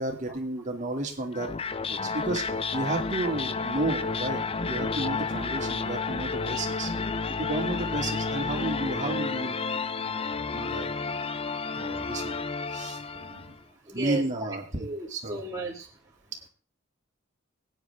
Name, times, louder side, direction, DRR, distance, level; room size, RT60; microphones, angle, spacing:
voice 1, 0.0-1.5 1.9-2.4 2.7-6.9 7.4-10.3 10.5-10.9 11.7-12.4 12.7-13.5 13.9-15.4, right 2 dB, 40° right, 2 dB, 2.6 m, -32 dB
sound 1, 1.3-13.6, left 4 dB, 30° left, 0.6 m, -31 dB
voice 2, 13.9-14.5 14.8-15.9, right 3 dB, 20° right, -3 dB, 2.1 m, -34 dB
22.5 x 9.7 x 3.6 m, 0.35 s
head